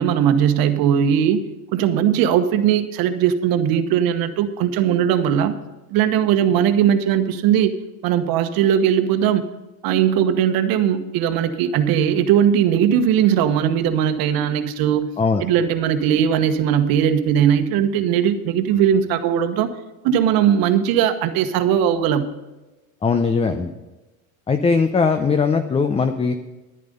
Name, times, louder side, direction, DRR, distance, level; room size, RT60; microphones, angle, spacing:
voice 1, 0.0-1.4 1.7-5.5 5.9-7.7 8.0-9.4 9.8-15.2 15.4-19.7 20.0-22.3, right 9 dB, 55° right, 9 dB, 1.3 m, -19 dB
voice 2, 23.0-23.7 24.5-26.3, left 4 dB, 15° left, 8 dB, 0.6 m, -19 dB
11.0 x 10.5 x 5.3 m, 1.1 s
supercardioid pair, 105°, 41 cm